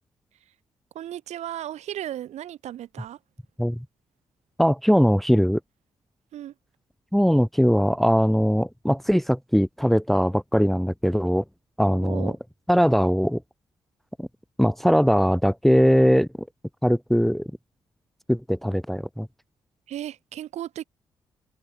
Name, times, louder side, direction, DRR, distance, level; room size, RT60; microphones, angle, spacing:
voice 1, 0.9-3.2 6.3-6.5 11.9-12.4 19.9-20.8, right 12 dB, 75° right, 3.2 m, -35 dB
voice 2, 4.6-5.6 7.1-11.4 11.8-12.4 12.7-13.4 14.2-14.3 14.6-16.3 16.8-17.5 18.3-19.3, equal, ahead, 1.0 m, -20 dB
hypercardioid pair, 40°, 12 cm